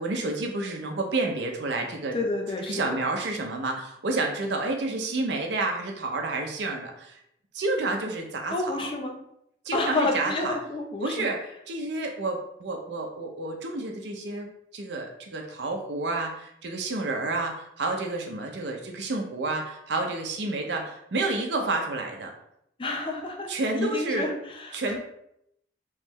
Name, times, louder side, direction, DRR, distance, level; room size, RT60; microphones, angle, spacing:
voice 1, 0.0-2.2 2.7-7.2 7.5-8.9 9.6-10.5 11.0-11.4 11.7-22.3 23.5-24.3 24.7-25.0, right 2 dB, 80° right, 2 dB, 0.6 m, -30 dB
voice 2, 2.1-3.0 8.5-9.1 9.7-11.3 22.8-25.0, left 2 dB, 30° left, 1 dB, 0.6 m, -30 dB
3.1 x 3.1 x 3.5 m, 0.77 s
head